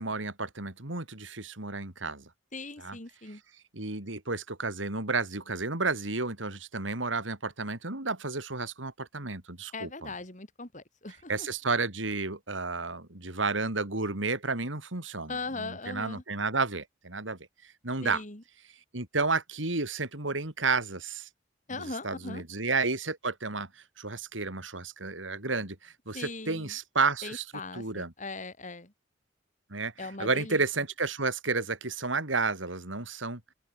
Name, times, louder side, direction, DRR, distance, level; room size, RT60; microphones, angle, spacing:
voice 1, 0.0-2.3 2.8-3.0 3.7-10.1 11.3-17.4 17.8-18.2 18.9-21.3 21.8-27.4 27.7-28.1 29.7-33.4, right 3 dB, 85° right, 3.8 m, -31 dB
voice 2, 2.5-3.4 9.7-11.5 15.3-16.2 18.0-18.4 21.7-22.4 26.1-26.7 27.2-28.9 30.0-30.6, left 3 dB, 40° left, 4.7 m, -39 dB
head